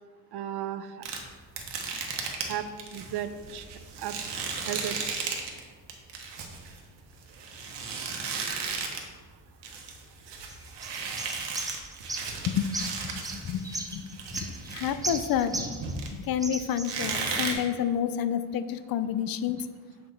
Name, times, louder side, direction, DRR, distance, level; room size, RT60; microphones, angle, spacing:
voice 1, 0.3-1.0 2.4-3.7 4.0-4.1 4.6-5.0 17.8-17.9, right 10 dB, 70° right, 11 dB, 0.6 m, -35 dB
sound 1, 1.0-5.6 5.9-9.1 9.4-16.4 16.8-17.5, right 5 dB, 85° right, 1.1 m, -35 dB
sound 2, 10.5-16.1 16.4-17.3, right 2 dB, 10° right, 0.6 m, -37 dB
voice 2, 12.5-15.6 16.2-19.7, left 9 dB, 60° left, 13 dB, 0.5 m, -30 dB
8.1 x 5.0 x 3.4 m, 1.5 s
cardioid pair, 110°, 41 cm